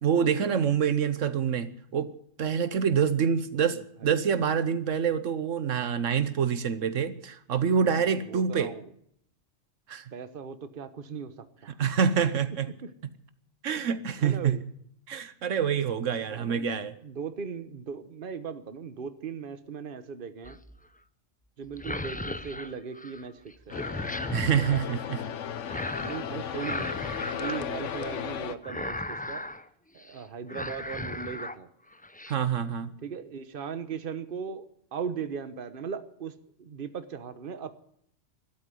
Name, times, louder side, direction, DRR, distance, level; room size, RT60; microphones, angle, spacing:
voice 1, 0.0-8.7 9.9-10.1 11.8-12.7 13.6-14.6 15.1-16.9 24.3-25.2 32.3-32.9, right 7 dB, 80° right, 1.3 m, -26 dB
voice 2, 7.9-8.8 10.1-11.3 11.6-11.8 12.8-12.9 14.2-14.6 16.3-20.6 21.6-23.3 23.7-23.8 26.0-26.9 27.3-29.4 29.9-31.7 33.0-34.6 34.9-36.3 36.6-37.8, right 6 dB, 45° right, 1.2 m, -38 dB
sound 1, 20.4-20.9 21.7-23.3 23.5-24.8 25.7-26.3 26.5-28.3 28.6-29.6 30.0-30.2 30.5-31.6 31.9-32.3, left 1 dB, 10° left, 0.4 m, -36 dB
sound 2, 23.7-28.6, left 8 dB, 70° left, 1.2 m, -35 dB
13.0 x 12.0 x 9.3 m
omnidirectional pair, 1.3 m